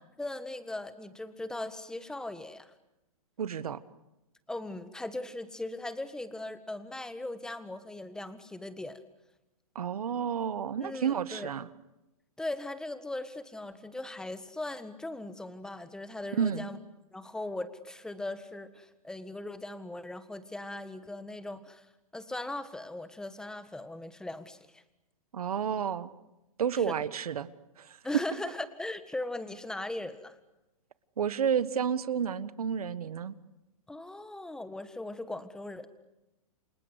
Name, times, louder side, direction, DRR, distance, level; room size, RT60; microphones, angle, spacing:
voice 1, 0.2-2.7 4.5-9.0 10.8-11.5 12.4-16.8 17.1-21.9 22.1-24.8 26.7-26.9 28.0-30.4 33.9-35.9, left 2 dB, 5° left, 12 dB, 1.6 m, -39 dB
voice 2, 3.4-3.8 9.7-11.7 16.3-16.7 25.3-26.1 26.6-27.5 27.8-28.2 31.2-33.4, right 7 dB, 85° right, 15 dB, 1.6 m, -30 dB
29.5 x 25.0 x 8.1 m, 0.97 s
hypercardioid pair, 145°, 19 cm